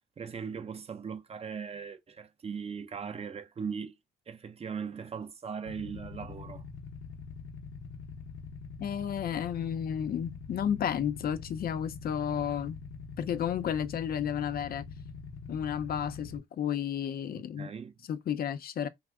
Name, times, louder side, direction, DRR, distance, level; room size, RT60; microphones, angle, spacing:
voice 1, 0.2-3.9 4.3-6.6 17.6-17.9, right 6 dB, 30° right, 0.5 m, -39 dB
Motorcycle / Idling, 5.7-16.4, left 5 dB, 75° left, 0.8 m, -44 dB
voice 2, 8.8-12.8 13.2-14.8 15.5-17.7 18.1-18.9, left 9 dB, 50° left, 0.4 m, -32 dB
2.4 x 2.4 x 3.4 m
cardioid pair, 90°, 20 cm